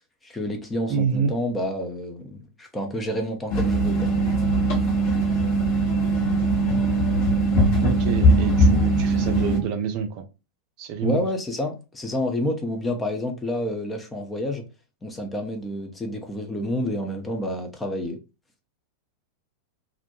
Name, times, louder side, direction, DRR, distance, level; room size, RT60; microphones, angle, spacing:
voice 1, 0.2-4.1 11.0-14.6 15.0-18.2, left 1 dB, 15° left, 0.5 m, -29 dB
voice 2, 0.9-1.3 5.0-5.2 7.8-10.3 10.8-11.2, right 6 dB, 40° right, 0.4 m, -27 dB
sound 1, 3.5-9.6, right 1 dB, 45° left, 0.8 m, -20 dB
2.4 x 2.1 x 2.8 m
figure-of-eight pair, 90°, 0 cm